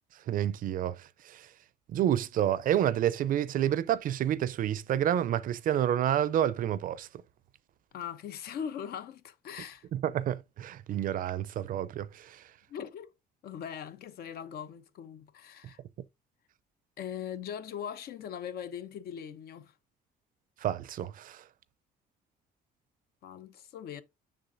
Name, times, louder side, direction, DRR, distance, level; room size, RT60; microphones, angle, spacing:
voice 1, 0.3-1.0 1.3-1.4 1.9-7.1 9.9-12.4 20.6-21.4, right 11 dB, 55° right, 0.5 m, -29 dB
voice 2, 7.9-9.9 12.7-13.1 13.4-15.8 17.0-19.7 23.2-24.0, left 8 dB, 65° left, 0.9 m, -40 dB
7.0 x 6.3 x 2.6 m
cardioid pair, 110°, 17 cm